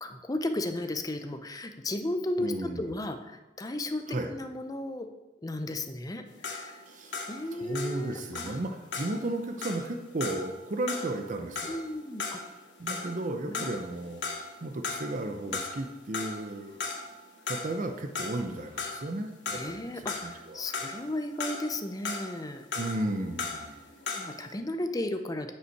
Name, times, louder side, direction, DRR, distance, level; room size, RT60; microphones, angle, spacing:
voice 1, 0.0-5.1 5.4-6.8 7.3-8.5 11.7-12.4 13.4-13.7 15.5-15.6 19.5-22.6 23.7-25.5, left 1 dB, 20° left, 7 dB, 0.6 m, -35 dB
voice 2, 2.4-2.9 4.1-4.4 6.9-11.8 12.8-14.2 14.6-16.8 17.5-20.6 22.8-23.8, right 2 dB, 45° right, 5 dB, 0.6 m, -34 dB
sound 1, 6.3-13.3 13.5-14.6 14.8-24.5, left 4 dB, 80° left, 1.2 m, -37 dB
9.0 x 5.5 x 4.6 m, 1.1 s
head